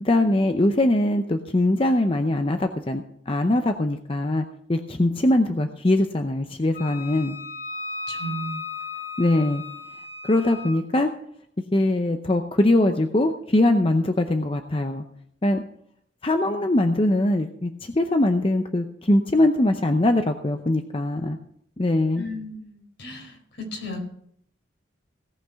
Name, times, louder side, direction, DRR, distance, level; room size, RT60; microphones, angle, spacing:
voice 1, 0.0-7.4 9.2-9.6 10.2-11.1 11.7-15.0 15.4-15.6 16.2-21.4 21.8-22.3, left 1 dB, 30° left, 6 dB, 0.6 m, -22 dB
Wind instrument woodwind instrument, 6.7-10.8, left 4 dB, 45° left, 4.2 m, -35 dB
voice 2, 8.1-8.7 22.1-24.0, equal, 75° left, 1 dB, 4.7 m, -35 dB
17.5 x 5.9 x 6.8 m, 0.69 s
head